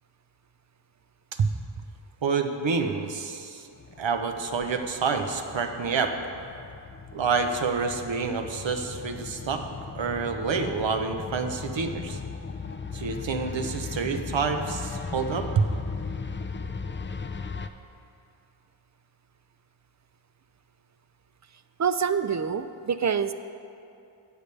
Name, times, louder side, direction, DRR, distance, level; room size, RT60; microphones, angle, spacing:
voice 1, 2.2-3.7 4.0-6.1 7.1-9.6 9.9-12.2 12.9-15.6, right 5 dB, 70° right, 6 dB, 0.9 m, -28 dB
sound 1, 3.7-17.7, left 5 dB, 25° left, 0.4 m, -37 dB
voice 2, 21.8-23.3, right 6 dB, 40° right, 11 dB, 0.4 m, -26 dB
17.5 x 6.9 x 3.3 m, 2.6 s
wide cardioid pair, 70°, 47 cm